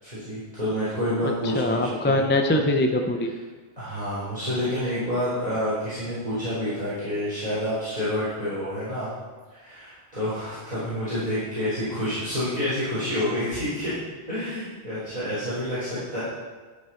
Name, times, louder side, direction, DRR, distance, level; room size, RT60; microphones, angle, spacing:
voice 1, 0.0-1.8 2.0-2.2 3.8-9.1 9.6-13.9 14.3-16.2, left 1 dB, 35° right, -12 dB, 4.0 m, -28 dB
voice 2, 1.4-3.3, left 1 dB, 15° left, 4 dB, 0.5 m, -23 dB
11.5 x 7.3 x 4.5 m, 1.4 s
omnidirectional pair, 1.1 m